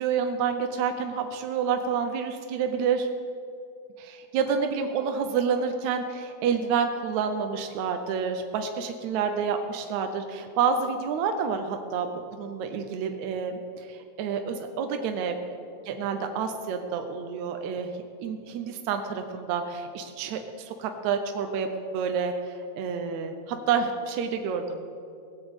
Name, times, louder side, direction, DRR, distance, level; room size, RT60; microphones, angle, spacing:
voice 1, 0.0-3.1 4.0-12.1 12.4-15.6 15.9-21.7 21.9-24.9, right 6 dB, 75° right, 6 dB, 2.1 m, -29 dB
17.5 x 7.8 x 8.0 m, 2.6 s
omnidirectional pair, 3.4 m